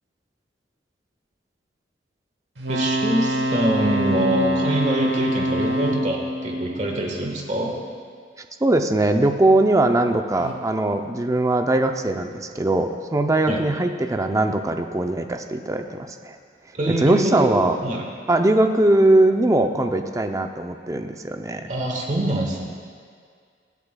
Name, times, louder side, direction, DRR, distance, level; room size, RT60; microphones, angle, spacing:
sound 1, 2.6-7.6 10.4-10.5, equal, 70° right, 1.0 m, -25 dB
voice 1, 2.7-7.8 13.5-13.6 16.7-17.5 17.8-18.0 21.7-22.6, right 1 dB, 45° right, 0 dB, 1.4 m, -24 dB
voice 2, 8.6-16.4 17.0-17.8 18.3-21.7, right 2 dB, 20° right, 6 dB, 0.5 m, -20 dB
23.0 x 8.2 x 2.3 m, 2.1 s
head